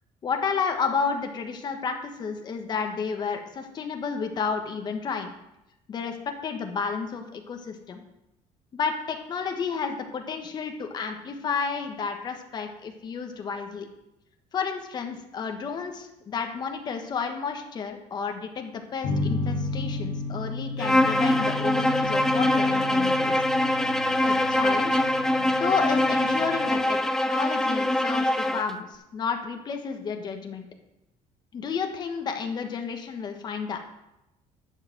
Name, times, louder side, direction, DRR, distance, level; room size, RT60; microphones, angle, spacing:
voice 1, 0.2-5.3 5.9-8.0 8.7-13.9 14.5-23.3 24.2-25.0 25.5-27.0 27.3-30.6 31.5-33.8, left 5 dB, 35° left, 4 dB, 1.3 m, -31 dB
sound 1, 19.0-26.7, left 2 dB, 60° left, 2.0 m, -33 dB
Bowed string instrument, 20.8-28.7, left 1 dB, 5° left, 0.4 m, -23 dB
11.5 x 4.9 x 7.7 m, 0.90 s
cardioid pair, 160°, 13 cm